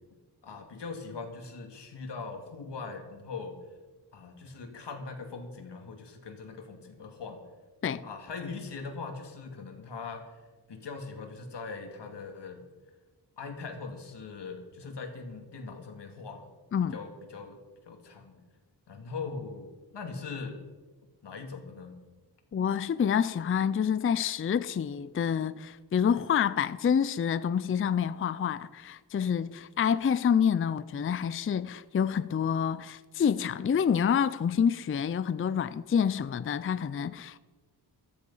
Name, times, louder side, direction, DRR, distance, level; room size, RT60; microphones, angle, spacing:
voice 1, 0.4-3.6 4.1-7.4 8.0-10.2 10.7-12.6 13.4-16.4 16.9-17.6 17.9-18.4 18.9-20.6 21.2-21.9, left 4 dB, 90° left, 2.3 m, -41 dB
voice 2, 22.5-37.4, left 7 dB, 35° left, 0.4 m, -27 dB
14.5 x 13.5 x 5.5 m
wide cardioid pair, 170°, 41 cm